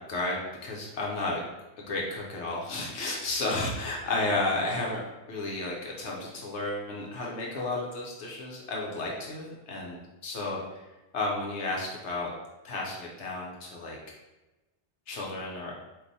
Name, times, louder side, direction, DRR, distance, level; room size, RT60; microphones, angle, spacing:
voice 1, 0.1-1.4 1.8-10.8 11.1-12.3 12.6-14.0 15.1-15.7, left 2 dB, 80° left, -2 dB, 1.1 m, -32 dB
4.7 x 2.6 x 4.0 m, 1.1 s
omnidirectional pair, 1.2 m